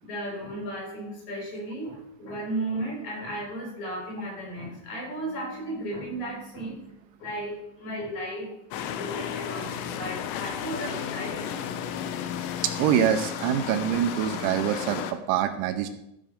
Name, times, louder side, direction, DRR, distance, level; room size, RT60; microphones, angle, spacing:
voice 1, 0.0-11.6, right 1 dB, 40° left, -2 dB, 5.0 m, -35 dB
sound 1, 8.7-15.1, left 9 dB, 80° left, 2.8 m, -33 dB
voice 2, 12.8-15.9, right 9 dB, 80° right, 8 dB, 3.0 m, -25 dB
14.5 x 6.5 x 5.1 m, 0.81 s
omnidirectional pair, 5.4 m